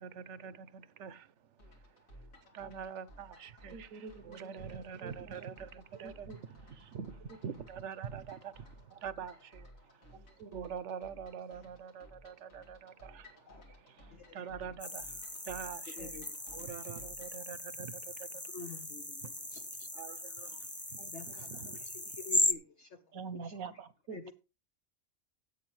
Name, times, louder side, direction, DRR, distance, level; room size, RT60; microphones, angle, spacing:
voice 1, 0.0-2.2 2.5-16.2 16.5-18.8 19.2-19.3 19.8-22.2, right 7 dB, 65° right, 1.0 m, -46 dB
sound 1, 1.6-17.4, equal, 80° left, 2.7 m, -57 dB
voice 2, 3.7-4.5 5.0-5.5 6.0-6.4 10.1-10.7 21.0-21.1 21.4-21.5 23.1-24.3, right 5 dB, 85° right, 1.3 m, -46 dB
voice 3, 13.5-13.8 14.1-14.4 16.0-16.7 18.5-19.6 20.5-20.7 21.1-23.0 23.3-23.6 24.1-24.3, left 4 dB, 60° left, 1.3 m, -49 dB
sound 2, 14.8-22.5, left 1 dB, 10° left, 0.5 m, -37 dB
14.0 x 8.4 x 3.1 m
omnidirectional pair, 1.4 m